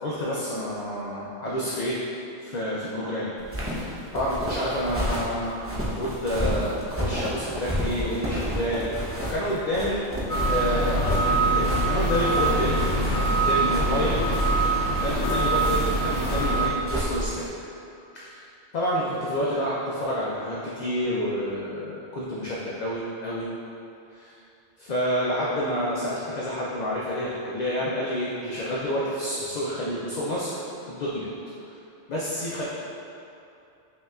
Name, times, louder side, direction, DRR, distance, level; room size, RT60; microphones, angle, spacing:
voice 1, 0.0-2.0 2.4-3.3 3.7-10.0 10.5-12.8 13.2-14.2 14.7-17.5 18.1-18.4 18.7-23.5 24.1-24.3 24.8-30.5 30.9-31.3 31.6-31.8 32.1-32.6, equal, 55° left, -6 dB, 0.5 m, -29 dB
sound 1, 3.4-17.5, equal, 20° right, 0.4 m, -31 dB
sound 2, 10.3-16.7, right 2 dB, 85° left, 1.0 m, -24 dB
5.3 x 2.8 x 2.3 m, 2.7 s
omnidirectional pair, 1.1 m